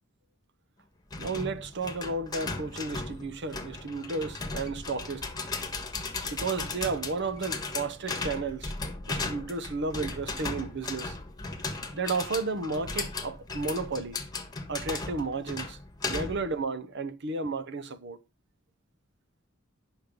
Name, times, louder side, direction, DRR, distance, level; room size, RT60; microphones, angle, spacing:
sound 1, 1.1-16.5, left 3 dB, 20° left, 1.5 m, -36 dB
voice 1, 1.2-5.3 6.2-8.7 9.1-11.2 11.9-14.2 14.7-15.8 16.1-18.2, right 3 dB, 60° right, 0.9 m, -33 dB
9.4 x 6.2 x 5.2 m
head